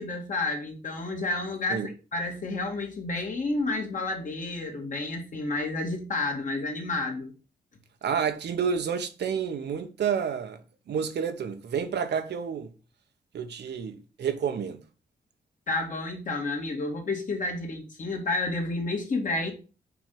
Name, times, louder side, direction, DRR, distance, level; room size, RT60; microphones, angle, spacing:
voice 1, 0.0-7.3 15.7-19.5, left 2 dB, 50° left, 2.1 m, -30 dB
voice 2, 8.0-10.6 10.9-12.7 13.3-14.8, right 7 dB, 80° right, 1.0 m, -29 dB
6.0 x 4.4 x 5.3 m
wide cardioid pair, 120°, 17 cm